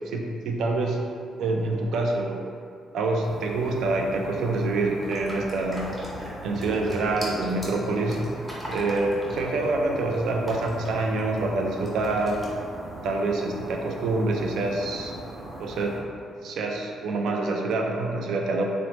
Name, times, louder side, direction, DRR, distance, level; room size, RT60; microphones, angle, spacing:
voice 1, 0.1-1.0 1.4-2.4 2.9-5.9 6.4-8.4 8.7-12.4 13.0-16.0 16.4-18.6, right 2 dB, 75° right, 1 dB, 0.3 m, -26 dB
sound 1, 3.2-16.0, right 1 dB, 35° right, 0.8 m, -40 dB
sound 2, 5.0-11.4 11.8-12.5, equal, 5° right, 0.8 m, -39 dB
2.8 x 2.0 x 3.1 m, 2.3 s
cardioid pair, 90°, 0 cm